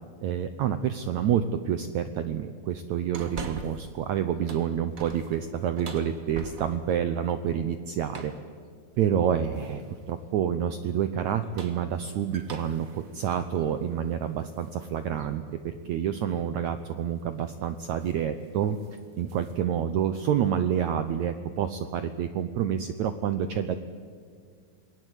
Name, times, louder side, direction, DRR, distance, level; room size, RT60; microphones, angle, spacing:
voice 1, 0.2-8.3 9.0-9.8 10.1-18.8 19.2-23.8, right 9 dB, 80° right, 10 dB, 1.7 m, -28 dB
sound 1, 3.1-4.0 4.3-7.0 8.1-8.5 9.5-10.0 11.3-14.7 15.2-15.3 16.8-17.0 17.4-17.6 17.9-18.2 18.5-19.6, right 3 dB, 50° right, 1.0 m, -43 dB
27.5 x 20.0 x 8.2 m, 2.1 s
omnidirectional pair, 4.4 m